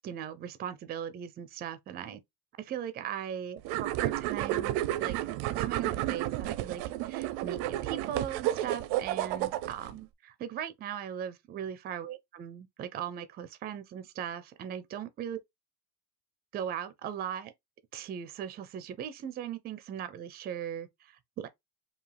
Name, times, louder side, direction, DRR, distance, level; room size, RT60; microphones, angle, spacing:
voice 1, 0.0-2.2 2.6-5.2 5.6-15.4 16.5-17.5 17.9-21.5, right 9 dB, 25° right, 0.4 m, -39 dB
sound 1, 3.6-9.9, right 14 dB, 90° right, 0.6 m, -31 dB
4.7 x 2.7 x 3.3 m
cardioid pair, 175°, 38 cm